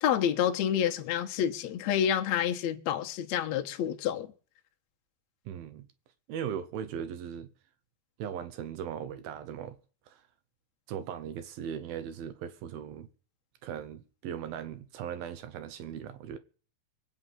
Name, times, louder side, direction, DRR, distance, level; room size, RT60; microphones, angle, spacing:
voice 1, 0.0-4.3, left 9 dB, 70° left, 1.7 m, -28 dB
voice 2, 5.5-5.9 6.3-7.5 8.2-9.8 10.1-10.2 10.9-13.1 13.6-16.4, right 8 dB, 75° right, 2.3 m, -38 dB
22.5 x 9.5 x 5.6 m
omnidirectional pair, 5.1 m